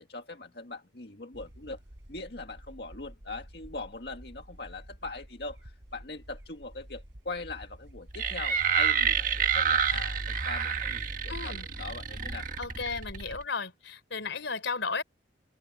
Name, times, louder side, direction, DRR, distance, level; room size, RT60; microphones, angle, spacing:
voice 1, 0.0-1.8 2.1-12.5, left 3 dB, 60° left, 2.0 m, -41 dB
sound 1, 1.3-12.5, equal, 80° right, 4.2 m, -50 dB
sound 2, 8.1-13.4, right 6 dB, 45° right, 1.7 m, -29 dB
voice 2, 11.3-11.7 12.6-15.0, left 4 dB, 90° left, 4.1 m, -34 dB
head